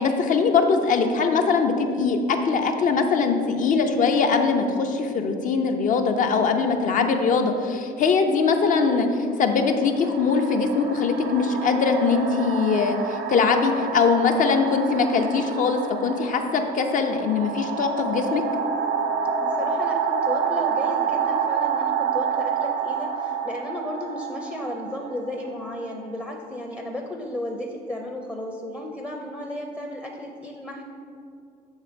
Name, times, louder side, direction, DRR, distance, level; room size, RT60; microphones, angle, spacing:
voice 1, 0.0-9.1 9.4-18.4, left 5 dB, 50° left, 5 dB, 0.6 m, -22 dB
sound 1, 8.4-8.6 9.5-26.2, right 6 dB, 85° right, 0.6 m, -28 dB
voice 2, 19.4-30.8, left 1 dB, 10° left, 1 dB, 0.6 m, -33 dB
7.3 x 3.3 x 5.1 m, 2.4 s
cardioid pair, 110°, 17 cm